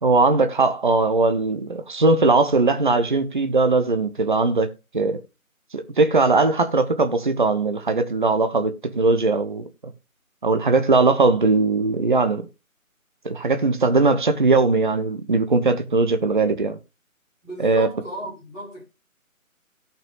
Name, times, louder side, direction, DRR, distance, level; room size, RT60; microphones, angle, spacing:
voice 1, 0.0-5.2 5.7-9.7 10.4-12.4 13.2-16.8 17.6-17.9, right 3 dB, 35° right, 0.9 m, -20 dB
voice 2, 17.4-18.8, right 2 dB, ahead, 0.8 m, -34 dB
17.5 x 5.8 x 2.4 m
figure-of-eight pair, 160°, 43 cm